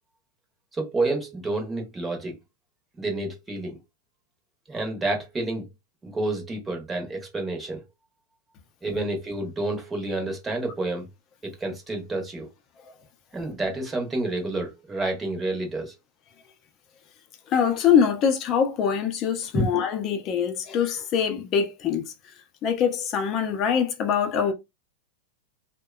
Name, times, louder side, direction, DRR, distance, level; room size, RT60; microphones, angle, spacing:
voice 1, 0.7-2.4 3.0-3.8 4.7-5.7 6.0-7.8 8.8-11.1 11.4-12.5 13.3-15.9 19.5-19.6, right 2 dB, 15° right, 0.8 m, -29 dB
voice 2, 17.5-22.1 22.6-24.5, left 7 dB, 35° left, 0.6 m, -23 dB
2.7 x 2.2 x 2.3 m
supercardioid pair, 140°, 0 cm